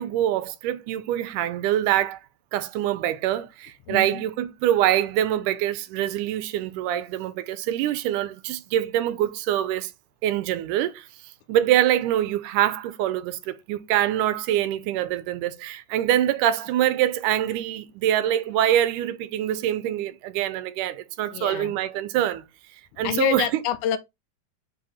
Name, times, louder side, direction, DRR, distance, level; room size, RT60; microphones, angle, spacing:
voice 1, 0.0-2.2 2.5-9.9 10.2-22.4 23.0-23.5, right 12 dB, 90° right, 2.2 m, -24 dB
voice 2, 3.9-4.2 21.3-21.8 23.0-24.0, left 11 dB, 80° left, 2.1 m, -27 dB
5.5 x 5.2 x 4.1 m
omnidirectional pair, 3.6 m